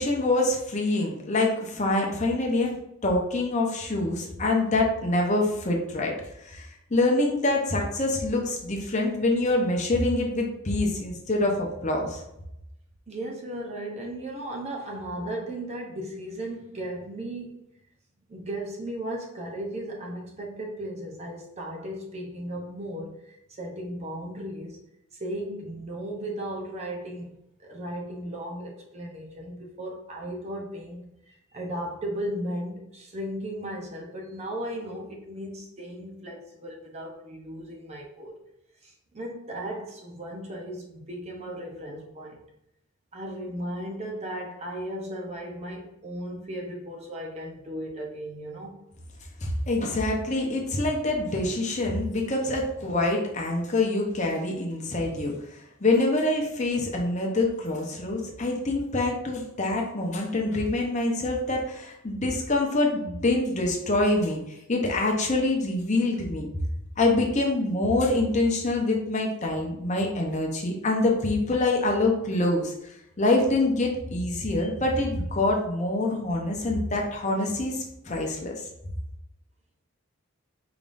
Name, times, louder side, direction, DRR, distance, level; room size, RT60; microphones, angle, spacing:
voice 1, 0.0-6.1 6.4-12.2 49.4-55.3 55.8-64.4 64.7-66.5 67.0-72.7 73.2-78.5, left 2 dB, 35° left, 0 dB, 0.7 m, -25 dB
voice 2, 13.1-17.6 18.3-24.8 25.1-27.3 27.6-38.3 38.8-42.4 43.1-48.8, right 1 dB, 30° right, -1 dB, 0.7 m, -36 dB
4.9 x 3.6 x 2.6 m, 0.82 s
head